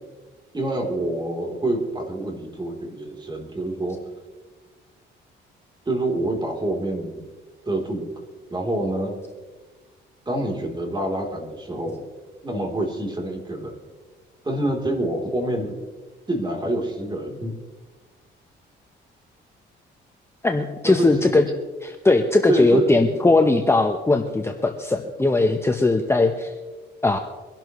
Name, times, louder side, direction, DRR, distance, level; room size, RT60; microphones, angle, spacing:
voice 1, 0.5-4.0 5.9-7.3 7.7-8.1 8.5-9.2 10.3-12.1 12.4-13.7 14.4-15.8 16.3-17.5 20.8-21.5 22.5-23.1, right 1 dB, 20° right, 1 dB, 3.5 m, -26 dB
voice 2, 20.4-21.5 21.8-26.5 27.0-27.2, left 2 dB, 15° left, 5 dB, 1.0 m, -19 dB
23.5 x 12.0 x 3.2 m, 1.3 s
cardioid pair, 90°, 20 cm